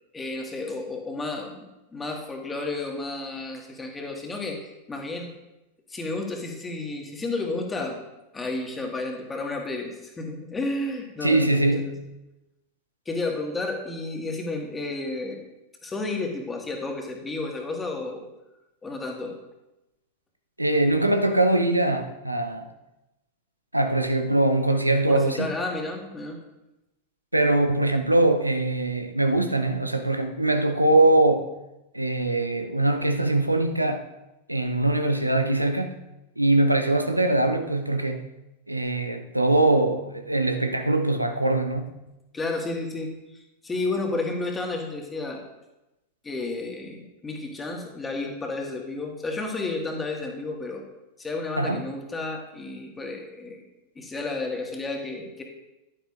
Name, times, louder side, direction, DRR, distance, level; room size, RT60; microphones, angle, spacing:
voice 1, 0.1-1.7 1.9-5.3 5.9-8.0 8.3-11.9 13.1-15.4 15.8-18.3 18.8-19.4 25.1-26.4 42.3-45.4 46.2-50.8 51.2-53.6 54.0-55.4, left 2 dB, 15° left, 1 dB, 1.8 m, -32 dB
voice 2, 11.2-12.0 20.6-22.7 23.7-25.5 27.3-31.5 31.9-34.0 34.5-36.0 36.4-38.2 38.7-41.9 51.6-51.8, right 2 dB, 85° right, 7 dB, 0.7 m, -22 dB
11.0 x 9.8 x 2.5 m, 0.96 s
figure-of-eight pair, 90°, 0 cm